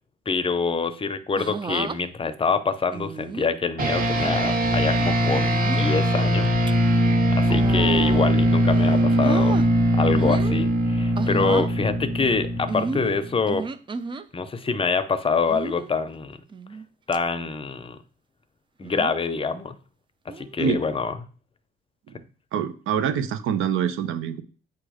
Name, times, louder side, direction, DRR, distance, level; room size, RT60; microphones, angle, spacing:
voice 1, 0.3-7.0 7.3-9.6 9.9-13.7 14.3-16.4 17.1-18.0 18.8-19.8 20.3-21.1, left 4 dB, 25° left, 11 dB, 0.6 m, -26 dB
sound 1, 1.4-2.0 2.9-3.5 4.1-4.3 5.3-5.9 6.4-6.7 7.4-8.4 8.7-9.7 10.1-10.6 11.2-11.7 12.7-14.3 15.5-15.9 16.5-16.9 17.1-17.2 18.8-19.2 20.3-20.6, right 4 dB, 25° right, 0.5 m, -32 dB
sound 2, 3.8-13.5, equal, 45° right, 1.6 m, -21 dB
voice 2, 22.5-24.4, right 8 dB, 70° right, 11 dB, 0.8 m, -25 dB
8.3 x 3.0 x 4.9 m, 0.39 s
cardioid pair, 110°, 21 cm